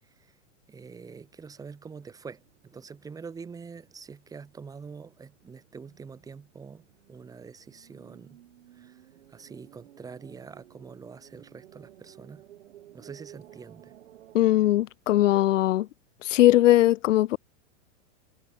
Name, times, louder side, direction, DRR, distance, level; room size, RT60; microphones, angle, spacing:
voice 1, 0.7-8.4 8.7-9.0 9.3-12.4 12.9-13.9, right 5 dB, 10° right, 2.4 m, -45 dB
sound 1, 0.7-14.8, right 12 dB, 70° right, 5.4 m, -55 dB
voice 2, 14.3-15.9 16.2-17.4, left 15 dB, 80° left, 0.7 m, -20 dB
supercardioid pair, 160°, 37 cm